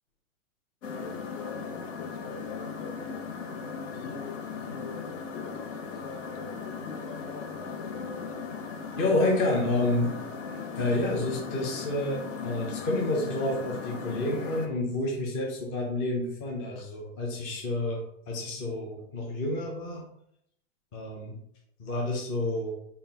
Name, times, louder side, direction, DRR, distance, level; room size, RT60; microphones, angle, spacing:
sound 1, 0.8-14.7, left 5 dB, 90° left, 0.8 m, -37 dB
voice 1, 0.9-3.1 3.9-8.3, left 5 dB, 50° left, 5 dB, 0.7 m, -45 dB
voice 2, 9.0-10.1 10.8-20.0 20.9-21.4 21.8-22.7, left 2 dB, 20° left, -1 dB, 0.4 m, -29 dB
3.8 x 2.4 x 3.8 m, 0.74 s
supercardioid pair, 150°, 37 cm